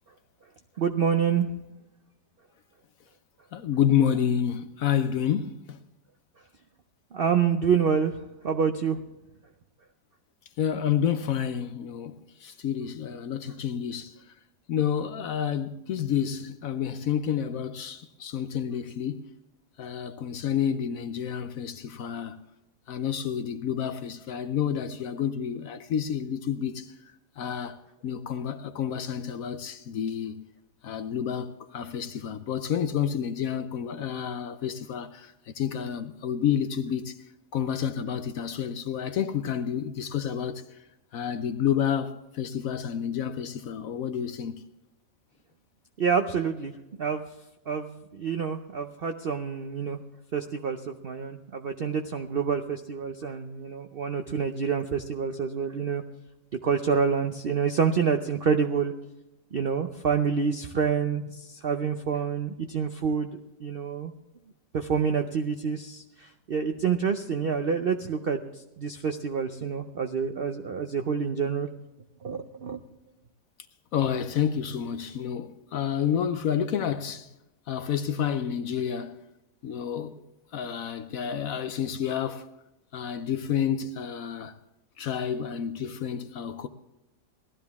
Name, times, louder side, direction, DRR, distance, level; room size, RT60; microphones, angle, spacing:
voice 1, 0.8-1.5 7.1-9.0 46.0-46.7 47.0-47.3 47.7-50.0 50.3-56.0 56.6-58.9 59.5-64.1 64.7-68.4 68.8-71.7 72.2-72.8, right 6 dB, 80° right, 0.5 m, -27 dB
voice 2, 3.5-5.8 10.6-14.1 14.7-19.2 19.8-22.4 22.9-26.9 27.4-30.4 30.8-37.2 37.5-40.6 41.1-44.6 73.9-77.3 77.7-79.2 79.6-80.2 80.5-82.5 82.9-84.5 85.0-86.7, left 8 dB, 65° left, 0.9 m, -29 dB
18.0 x 12.5 x 3.5 m
omnidirectional pair, 1.9 m